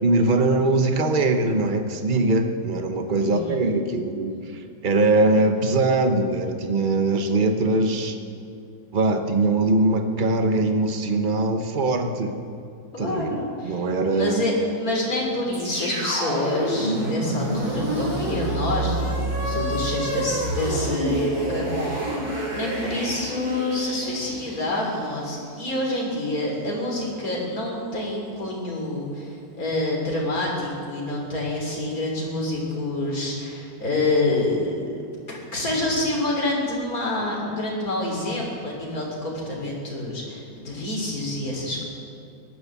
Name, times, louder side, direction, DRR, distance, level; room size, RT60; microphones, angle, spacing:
voice 1, 0.0-8.2 8.9-12.4 13.0-14.5, right 2 dB, 35° right, 6 dB, 1.1 m, -22 dB
voice 2, 3.2-3.6 12.9-13.8 14.1-22.2 22.5-34.9 35.3-41.9, left 2 dB, 65° left, -2 dB, 3.7 m, -27 dB
sound 1, 15.5-25.7, right 1 dB, 75° right, 5.3 m, -28 dB
17.5 x 11.0 x 7.3 m, 2.4 s
omnidirectional pair, 1.6 m